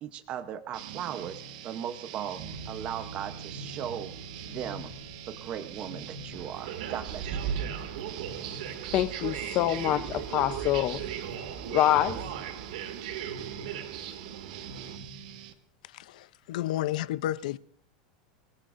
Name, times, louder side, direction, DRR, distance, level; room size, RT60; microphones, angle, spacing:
voice 1, 0.0-2.4 2.7-4.1 4.4-4.9 5.3-7.5, right 9 dB, 30° right, 0.8 m, -37 dB
sound 1, 0.7-15.5, right 6 dB, 65° right, 1.4 m, -44 dB
sound 2, 2.4-13.9 14.2-14.4, right 7 dB, 45° right, 3.7 m, -42 dB
sound 3, 6.3-15.0, right 9 dB, 80° right, 2.2 m, -38 dB
voice 2, 8.9-11.0 11.7-12.2, left 13 dB, 35° left, 0.6 m, -25 dB
voice 3, 15.8-17.6, left 13 dB, 75° left, 0.6 m, -32 dB
27.5 x 17.5 x 2.6 m
supercardioid pair, 165°, 4 cm